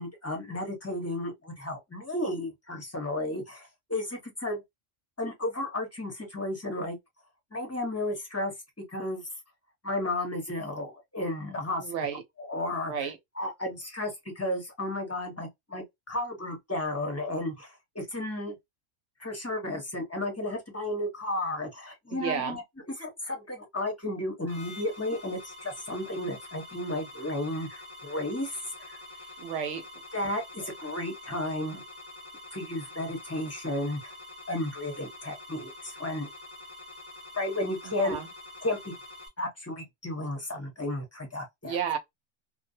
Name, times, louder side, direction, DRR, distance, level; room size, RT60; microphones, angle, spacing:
voice 1, 0.0-4.6 5.2-7.0 7.5-8.5 8.9-9.3 9.8-11.9 12.4-18.6 19.2-29.0 30.1-31.8 32.5-34.1 34.5-36.3 37.4-38.2 38.6-38.9 39.4-41.8, left 1 dB, 15° left, 0.7 m, -33 dB
voice 2, 11.8-12.2 12.8-13.2 22.1-22.6 29.4-29.8 38.0-38.3 41.6-42.0, right 7 dB, 75° right, 1.0 m, -32 dB
sound 1, 24.5-39.3, left 2 dB, 10° right, 1.0 m, -46 dB
2.4 x 2.1 x 2.6 m
omnidirectional pair, 1.3 m